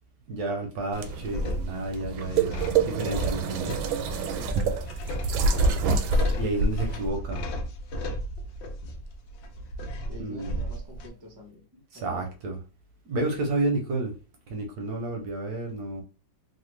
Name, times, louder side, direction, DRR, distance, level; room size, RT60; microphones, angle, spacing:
voice 1, 0.3-3.8 6.3-7.4 10.2-10.6 11.9-12.6 13.1-14.1 14.5-16.0, right 2 dB, 65° right, 3 dB, 1.0 m, -31 dB
nalévání vody, 0.9-7.1, right 4 dB, 85° right, 1.3 m, -27 dB
sound 1, 1.1-11.1, equal, 75° left, 1.3 m, -34 dB
voice 2, 4.3-4.9 10.1-12.3, equal, 40° right, 1 dB, 0.3 m, -46 dB
3.2 x 2.4 x 3.1 m, 0.32 s
omnidirectional pair, 2.1 m